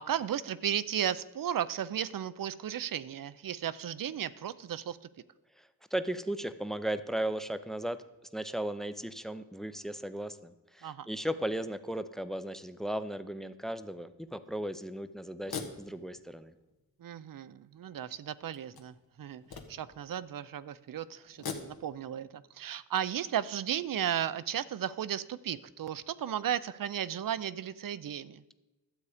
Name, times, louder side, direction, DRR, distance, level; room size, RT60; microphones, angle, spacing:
voice 1, 0.0-5.0 10.8-11.1 17.0-28.4, right 10 dB, 60° right, 16 dB, 0.6 m, -35 dB
voice 2, 5.6-8.0 8.3-16.5, right 1 dB, ahead, 11 dB, 0.5 m, -36 dB
sound 1, 14.2-14.3 15.3-16.7 17.4-17.5 18.5-20.1 21.2-22.1, left 5 dB, 75° left, 1.4 m, -43 dB
12.5 x 8.2 x 5.0 m, 1.1 s
wide cardioid pair, 120°, 37 cm